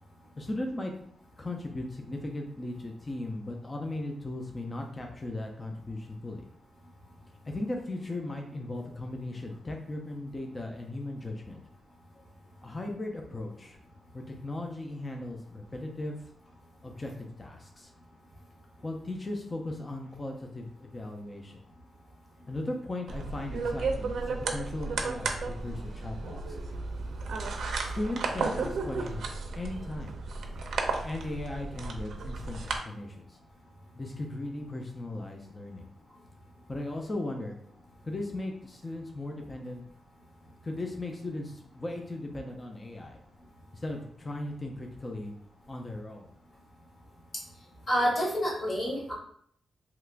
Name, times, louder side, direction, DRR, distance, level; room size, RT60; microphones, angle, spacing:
voice 1, 0.4-0.9 1.4-6.4 7.5-11.6 12.6-13.8 14.1-16.2 16.8-17.9 18.8-21.6 22.5-26.6 27.8-30.1 31.0-33.4 34.0-35.9 36.7-37.6 38.0-39.8 40.6-43.2 43.7-45.3 45.7-46.3, left 2 dB, 20° left, 2 dB, 0.4 m, -37 dB
sound 1, 23.1-32.8, right 4 dB, 75° right, 0.4 m, -34 dB
voice 2, 47.9-49.1, equal, 40° left, -3 dB, 1.1 m, -28 dB
2.9 x 2.4 x 3.3 m, 0.64 s
wide cardioid pair, 145°, 0 cm